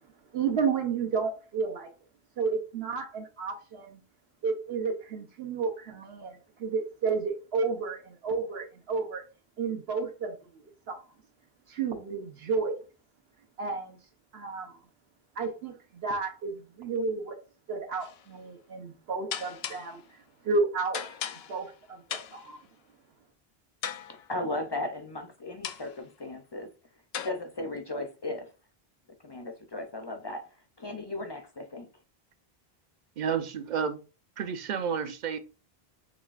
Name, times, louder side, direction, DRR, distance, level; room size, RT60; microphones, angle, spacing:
voice 1, 0.3-1.9 2.4-4.0 4.4-9.2 9.6-10.6 10.9-11.0 11.7-12.8 13.6-14.0 14.3-14.8 15.4-17.4 17.7-20.0 20.4-21.0 21.5-22.0 22.3-22.6, right 4 dB, 85° right, 1.1 m, -31 dB
sound 1, 18.0-18.3 19.3-20.0 20.9-21.7 22.1-22.5 23.8-24.4 25.6-26.0 27.1-27.3, left 9 dB, 80° left, 0.8 m, -37 dB
voice 2, 24.3-26.7 27.1-28.5 29.2-31.9, left 2 dB, 40° left, 0.4 m, -36 dB
voice 3, 33.2-34.0 34.4-35.4, right 7 dB, 55° right, 0.6 m, -31 dB
6.4 x 3.1 x 2.4 m
omnidirectional pair, 1.0 m